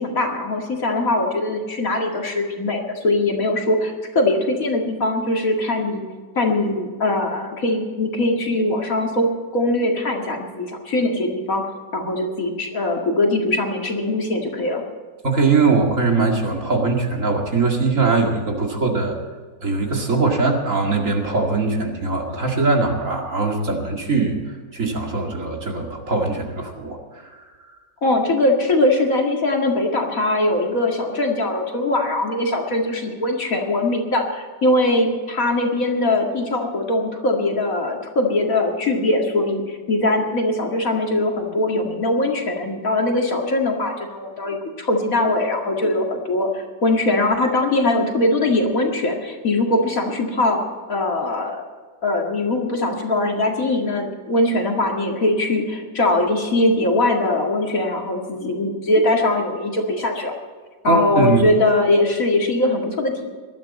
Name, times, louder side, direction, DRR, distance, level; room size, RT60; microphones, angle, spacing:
voice 1, 0.0-6.0 6.4-9.3 9.5-11.6 11.9-14.8 28.0-50.6 50.9-51.6 52.0-60.3 60.8-63.3, left 2 dB, 50° left, 1 dB, 2.5 m, -21 dB
voice 2, 15.2-19.1 19.6-24.4 24.7-27.4 60.8-61.5, right 3 dB, 45° right, 1 dB, 2.6 m, -21 dB
20.0 x 12.5 x 4.3 m, 1.5 s
omnidirectional pair, 1.9 m